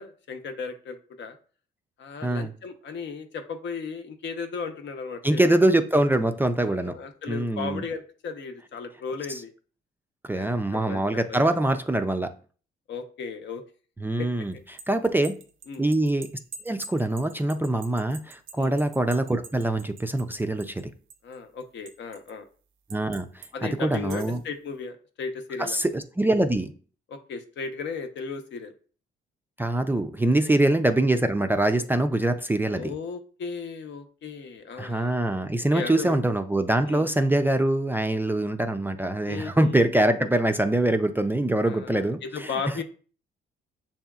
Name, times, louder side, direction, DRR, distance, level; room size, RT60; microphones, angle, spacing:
voice 1, 0.0-1.4 2.0-5.6 6.6-9.5 10.3-11.7 12.9-13.6 14.2-14.3 15.7-15.9 18.6-18.8 21.2-22.5 23.5-25.8 27.1-28.7 30.4-30.6 32.7-35.2 35.7-36.2 36.9-37.1 39.3-39.9 41.6-42.8, left 5 dB, 65° left, 6 dB, 0.8 m, -36 dB
voice 2, 5.2-6.9 7.3-7.8 9.3-9.4 10.3-12.3 14.0-14.5 14.9-15.3 15.8-16.3 16.6-20.9 22.9-24.4 25.6-26.7 29.6-32.9 34.8-42.8, right 1 dB, 10° right, 7 dB, 0.3 m, -24 dB
sound 1, 14.5-20.8 21.1-22.3 22.9-23.5 23.9-24.5, right 5 dB, 90° right, 0.6 m, -45 dB
7.1 x 2.8 x 2.3 m, 0.41 s
cardioid pair, 90°, 20 cm